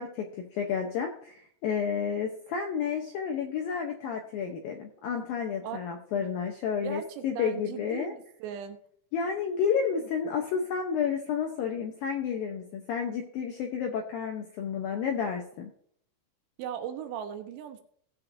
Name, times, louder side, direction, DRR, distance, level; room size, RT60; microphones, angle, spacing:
voice 1, 0.0-8.1 9.1-15.7, left 7 dB, 80° left, 3 dB, 2.1 m, -31 dB
voice 2, 6.8-8.8 16.6-17.8, right 8 dB, 80° right, 7 dB, 3.1 m, -38 dB
18.5 x 7.5 x 2.7 m, 0.63 s
omnidirectional pair, 5.2 m